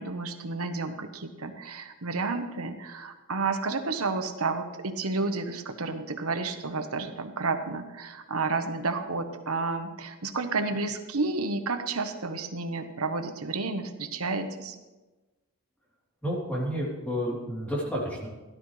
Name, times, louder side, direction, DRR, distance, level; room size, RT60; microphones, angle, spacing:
voice 1, 0.0-14.7, right 3 dB, 75° right, 7 dB, 1.2 m, -31 dB
voice 2, 16.2-18.3, equal, 5° left, -5 dB, 3.3 m, -30 dB
16.5 x 12.0 x 3.3 m, 1.1 s
head